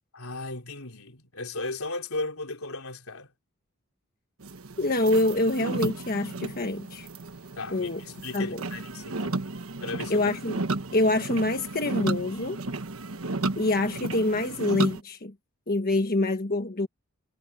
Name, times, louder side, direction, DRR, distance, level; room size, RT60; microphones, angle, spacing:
voice 1, 0.1-3.3 7.6-9.4 9.8-10.3, left 2 dB, 80° left, 4.0 m, -36 dB
sound 1, 4.4-15.0, right 2 dB, 75° right, 1.3 m, -33 dB
voice 2, 4.8-7.1 7.7-8.0 8.3-8.6 10.1-10.6 10.9-12.6 13.6-15.3 15.7-16.9, left 2 dB, 45° left, 1.4 m, -26 dB
head